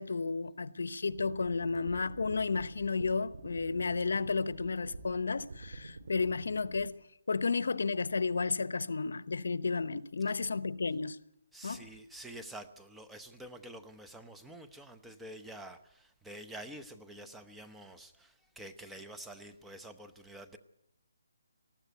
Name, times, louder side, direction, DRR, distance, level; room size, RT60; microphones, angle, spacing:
voice 1, 0.0-7.0 7.3-11.2 11.6-11.8, left 4 dB, 80° left, 0.9 m, -32 dB
sound 1, 1.1-6.8, right 3 dB, 85° right, 5.4 m, -47 dB
voice 2, 11.5-20.6, right 1 dB, 5° right, 0.8 m, -48 dB
19.5 x 14.5 x 9.3 m
hypercardioid pair, 165°, 0 cm